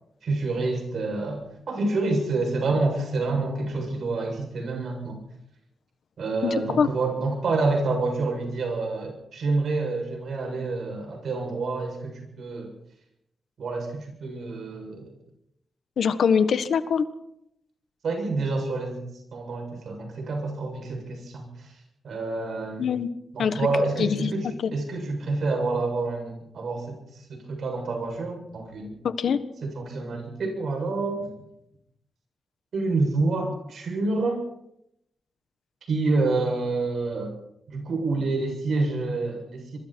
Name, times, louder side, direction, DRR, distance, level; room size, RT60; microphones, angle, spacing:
voice 1, 0.2-5.2 6.2-12.7 13.6-15.2 18.0-19.0 19.3-21.8 22.0-22.9 23.3-28.9 29.6-31.3 32.7-34.4 35.9-37.3 37.7-39.8, right 3 dB, 70° right, 3 dB, 7.7 m, -28 dB
voice 2, 6.4-6.9 16.0-17.0 22.8-23.1 23.4-23.6 24.0-24.7 29.0-29.4, left 6 dB, 80° left, 11 dB, 1.4 m, -23 dB
26.5 x 23.0 x 4.6 m, 0.79 s
wide cardioid pair, 145°, 0 cm